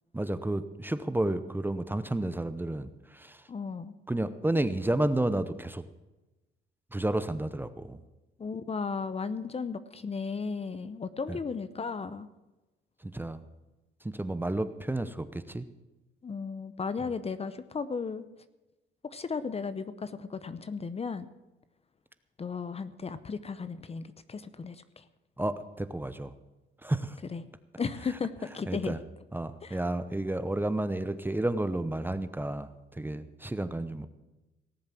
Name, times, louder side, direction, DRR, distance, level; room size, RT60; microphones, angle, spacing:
voice 1, 0.1-3.4 4.1-5.8 6.9-8.0 11.3-11.4 13.0-13.4 14.0-15.7 25.4-26.3 26.8-27.2 28.7-29.0 29.3-34.1, right 1 dB, 10° right, 12 dB, 0.8 m, -31 dB
voice 2, 3.5-3.9 8.4-12.3 16.2-18.3 19.1-21.3 22.4-25.0 27.3-27.4 27.8-29.0 29.6-29.8, left 5 dB, 30° left, 13 dB, 0.8 m, -35 dB
18.0 x 7.5 x 7.6 m, 1.1 s
cardioid pair, 90°, 20 cm